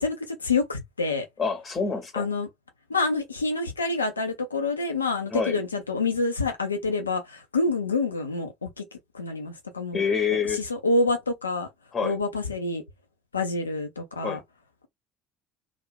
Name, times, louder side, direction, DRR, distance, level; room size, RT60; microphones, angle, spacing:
voice 1, 0.0-1.3 2.1-2.5 2.9-8.8 9.1-10.0 10.5-11.7 12.0-12.8 13.3-14.4, left 3 dB, 80° left, 0.3 m, -27 dB
voice 2, 1.4-2.3 5.3-5.6 9.9-10.6 11.9-12.2 14.2-14.4, left 6 dB, 30° left, 0.6 m, -27 dB
2.4 x 2.0 x 3.1 m
figure-of-eight pair, 60°, 0 cm